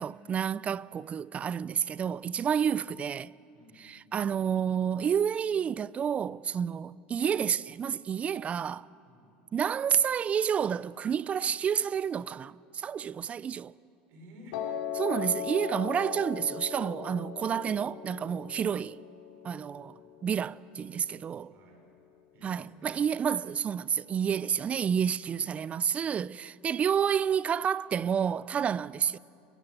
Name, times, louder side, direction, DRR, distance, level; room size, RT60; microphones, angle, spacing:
voice 1, 0.0-3.3 3.8-8.9 9.5-13.7 15.0-19.0 19.4-19.9 20.2-21.5 22.4-29.2, right 8 dB, 30° right, 0.5 m, -29 dB
voice 2, 3.5-4.0 9.1-9.3 14.1-14.8 19.9-20.1 21.5-21.9 22.3-23.0 25.4-25.5, left 1 dB, 55° right, 5.7 m, -54 dB
Piano, 14.5-20.7, left 9 dB, 80° left, 3.8 m, -38 dB
29.5 x 16.5 x 8.1 m
supercardioid pair, 115°, 5 cm